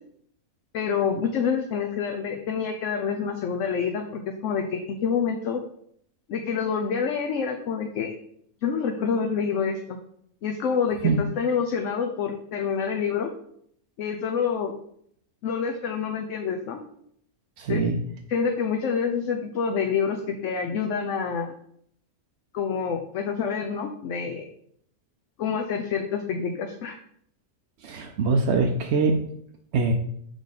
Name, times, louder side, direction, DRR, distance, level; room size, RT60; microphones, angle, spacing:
voice 1, 0.7-5.6 6.3-8.1 8.6-10.0 10.4-13.3 14.0-14.7 15.4-16.8 17.7-17.8 18.3-21.5 22.5-24.4 25.4-27.0, left 6 dB, 65° left, 3 dB, 1.0 m, -27 dB
voice 2, 17.6-17.9 27.8-29.2 29.7-29.9, right 4 dB, 60° right, 2 dB, 0.8 m, -23 dB
6.5 x 5.0 x 4.0 m, 0.67 s
omnidirectional pair, 1.5 m